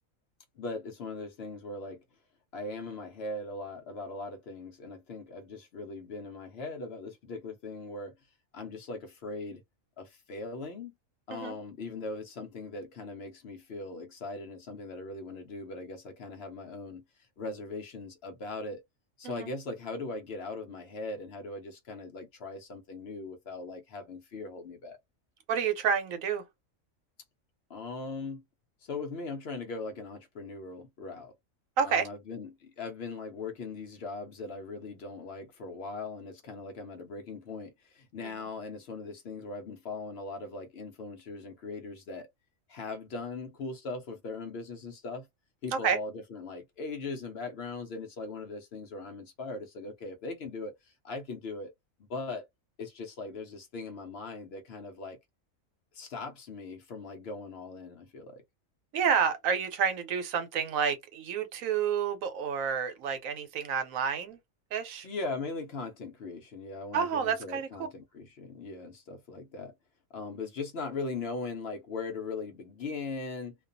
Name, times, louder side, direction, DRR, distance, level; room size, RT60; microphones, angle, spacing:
voice 1, 0.6-2.0 2.5-8.1 8.5-9.6 10.0-10.9 11.3-17.0 17.4-18.8 19.2-25.0 27.7-28.4 28.8-31.3 31.8-42.3 42.7-45.3 45.6-51.7 52.1-52.5 52.8-55.2 55.9-58.4 65.0-69.7 70.1-73.6, left 3 dB, 60° left, 0.7 m, -39 dB
voice 2, 25.5-26.4 31.8-32.1 38.2-38.5 45.7-46.0 58.9-64.4 64.7-65.1 66.9-67.7, right 7 dB, 80° right, 1.1 m, -29 dB
2.5 x 2.2 x 2.5 m
omnidirectional pair, 1.4 m